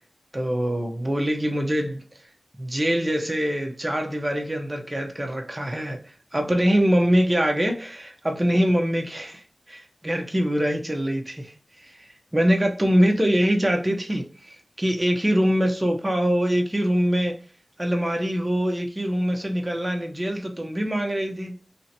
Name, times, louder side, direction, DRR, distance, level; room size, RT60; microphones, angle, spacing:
voice 1, 0.3-2.0 2.6-6.0 6.3-9.4 9.7-11.5 11.8-12.0 12.3-17.4 17.8-21.5, equal, 25° right, 0.9 m, -23 dB
3.4 x 2.8 x 2.8 m
wide cardioid pair, 45°, 0 cm